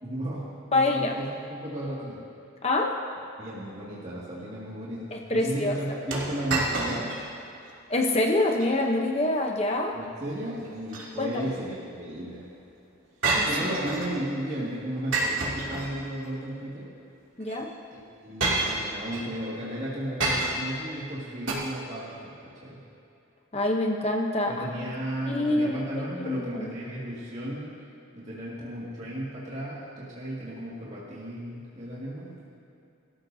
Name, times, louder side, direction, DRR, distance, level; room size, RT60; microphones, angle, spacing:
voice 1, 0.0-2.2 3.4-7.2 9.9-12.5 13.4-16.9 17.9-22.8 24.5-27.8 28.1-32.4, right 1 dB, 35° right, -8 dB, 2.1 m, -34 dB
voice 2, 0.7-1.1 2.6-3.0 5.1-5.7 7.9-9.9 11.2-11.3 13.3-13.5 17.4-17.7 23.5-24.7 25.3-26.7, left 2 dB, 30° left, 1 dB, 0.9 m, -26 dB
sound 1, 6.1-7.3 7.7-7.8 8.4-8.7 10.6-11.5 13.2-14.2 15.1-16.3 17.4-17.6 18.4-19.3 20.2-20.8 21.5-21.6, right 2 dB, 70° right, 2.8 m, -28 dB
23.0 x 14.0 x 2.8 m, 2.7 s
head